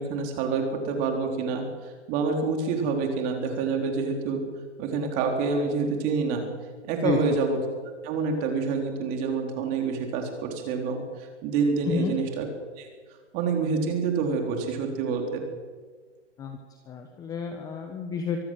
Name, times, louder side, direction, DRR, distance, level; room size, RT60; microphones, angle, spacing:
voice 1, 0.0-4.4 4.8-6.5 6.8-7.6 8.0-12.5 12.8-12.9 13.3-15.4, right 5 dB, 25° right, 3 dB, 3.9 m, -27 dB
voice 2, 16.9-18.4, left 6 dB, 10° left, 5 dB, 1.1 m, -30 dB
24.5 x 17.5 x 7.7 m, 1.5 s
hypercardioid pair, 150°, 35 cm